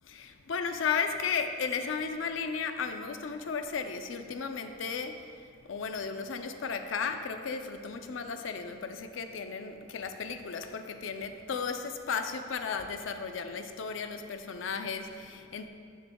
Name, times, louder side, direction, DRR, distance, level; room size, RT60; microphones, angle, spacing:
voice 1, 0.1-5.3 5.7-15.7, left 5 dB, 75° left, 7 dB, 0.5 m, -34 dB
12.0 x 7.1 x 2.3 m, 2.2 s
head